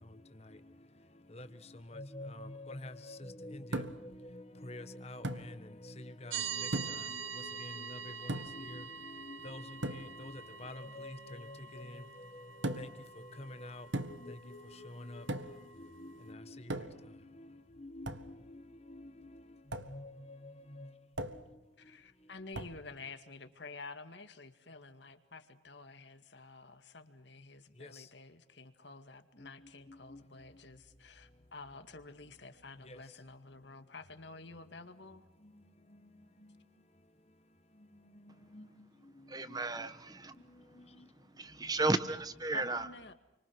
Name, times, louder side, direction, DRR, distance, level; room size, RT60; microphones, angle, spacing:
voice 1, 1.7-12.9 13.2-17.5 17.8-19.4 19.7-20.9 27.8-28.0 29.4-29.5 29.9-30.2 32.9-33.0 35.4-35.5 35.9-36.0 38.1-38.7 39.5-39.6 40.8-40.9, left 1 dB, 30° left, 1.5 m, -48 dB
sound 1, 3.7-4.2 5.2-5.5 6.7-7.1 8.3-8.7 9.8-10.1 12.6-13.0 13.9-14.3 15.3-15.6 16.7-17.1 18.1-18.3 19.7-20.0 21.2-21.5 22.5-22.8, right 1 dB, 70° right, 1.7 m, -38 dB
sound 2, 6.3-16.3, right 7 dB, 90° right, 1.2 m, -45 dB
voice 2, 21.8-35.2 42.5-43.1, left 3 dB, 65° left, 2.1 m, -50 dB
voice 3, 39.3-40.3 41.4-42.9, right 3 dB, 20° right, 1.3 m, -34 dB
29.5 x 24.5 x 6.2 m
head